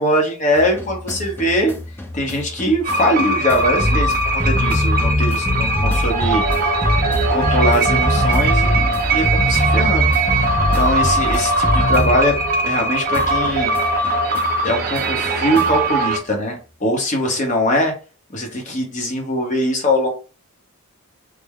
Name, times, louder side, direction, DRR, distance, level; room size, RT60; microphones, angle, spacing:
voice 1, 0.0-1.7 2.1-6.8 7.3-10.1 10.6-12.4 12.6-13.7 14.6-17.9 18.3-20.1, equal, 35° left, 2 dB, 0.9 m, -21 dB
sound 1, 0.6-12.8 13.1-15.9, left 1 dB, 10° left, 0.3 m, -23 dB
sound 2, 2.8-16.2, right 3 dB, 40° right, 0.6 m, -20 dB
3.3 x 2.1 x 3.5 m, 0.35 s
head